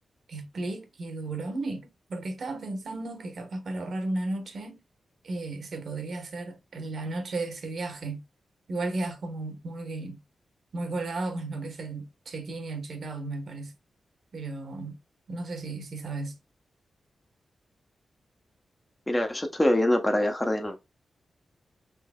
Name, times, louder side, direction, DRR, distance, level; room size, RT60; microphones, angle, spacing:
voice 1, 0.3-4.8 5.2-8.2 8.7-10.2 10.7-13.7 14.3-15.0 15.3-16.3, right 2 dB, 65° right, 1.1 m, -34 dB
voice 2, 19.1-20.8, left 1 dB, 15° left, 0.8 m, -24 dB
3.8 x 3.3 x 2.2 m
cardioid pair, 90°, 0 cm